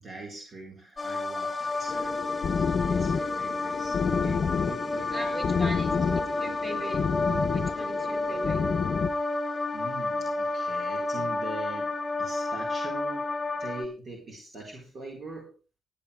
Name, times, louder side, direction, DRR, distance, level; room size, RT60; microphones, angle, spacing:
voice 1, 0.0-2.2 2.9-5.8 9.4-13.3 13.6-15.5, right 2 dB, 50° right, 0 dB, 4.4 m, -43 dB
sound 1, 1.0-13.9, left 2 dB, 30° left, 1.5 m, -31 dB
sound 2, 1.9-9.1, left 6 dB, 50° left, 0.9 m, -29 dB
voice 2, 5.1-7.0 7.5-8.6, right 1 dB, 20° right, 3 dB, 6.9 m, -40 dB
18.5 x 9.9 x 3.4 m, 0.32 s
supercardioid pair, 70°, 0 cm